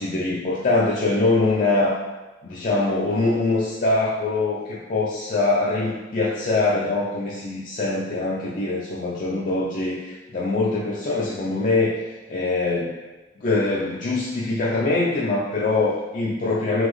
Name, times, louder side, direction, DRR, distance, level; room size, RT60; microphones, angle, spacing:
voice 1, 0.0-2.0 2.4-13.0 13.4-16.9, left 2 dB, 45° left, -6 dB, 0.4 m, -23 dB
3.9 x 2.9 x 3.1 m, 1.1 s
head